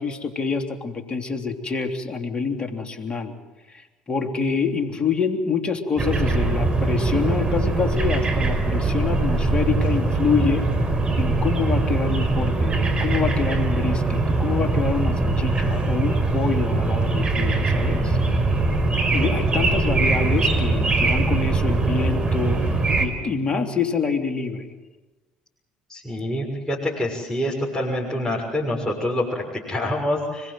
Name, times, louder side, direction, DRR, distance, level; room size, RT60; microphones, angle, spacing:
voice 1, 0.0-3.4 3.7-10.7 11.2-18.2 19.1-22.6 23.0-24.7, left 5 dB, 30° left, 4 dB, 3.5 m, -26 dB
sound 1, 6.0-23.1, right 3 dB, 30° right, 5.0 m, -22 dB
voice 2, 25.9-30.5, left 1 dB, 15° left, -4 dB, 6.6 m, -26 dB
25.5 x 22.0 x 7.9 m, 1.2 s
hypercardioid pair, 65°, 3 cm